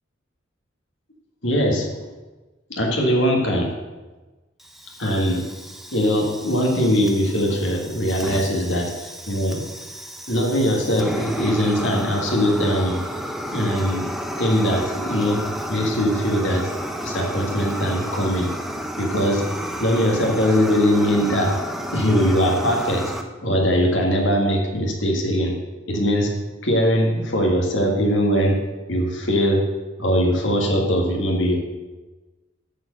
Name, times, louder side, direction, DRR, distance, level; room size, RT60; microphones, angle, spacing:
voice 1, 1.4-2.0 2.7-3.8 5.0-5.5 5.9-9.7 10.3-13.0 13.5-14.1 14.4-16.7 17.0-18.5 19.0-19.5 19.8-21.6 21.9-23.1 23.4-25.6 25.9-28.6 28.9-29.7 30.0-31.6, equal, 70° left, 1 dB, 1.8 m, -21 dB
Fire, 4.6-23.2, equal, ahead, 0.6 m, -32 dB
12.5 x 4.5 x 7.9 m, 1.2 s
head